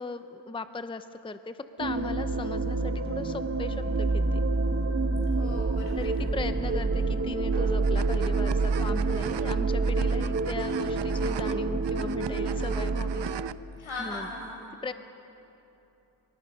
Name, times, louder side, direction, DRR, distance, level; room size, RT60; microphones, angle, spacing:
voice 1, 0.0-4.4 6.0-13.3 14.0-14.3 14.8-14.9, left 3 dB, 10° left, 10 dB, 0.7 m, -38 dB
sound 1, 1.8-13.5, right 3 dB, 30° right, 1.1 m, -27 dB
voice 2, 5.3-6.2 13.8-14.7, left 2 dB, 80° left, 0 dB, 5.9 m, -39 dB
sound 2, 7.5-13.5, right 10 dB, 60° right, 0.7 m, -40 dB
26.0 x 23.5 x 5.6 m, 3.0 s
wide cardioid pair, 90°, 48 cm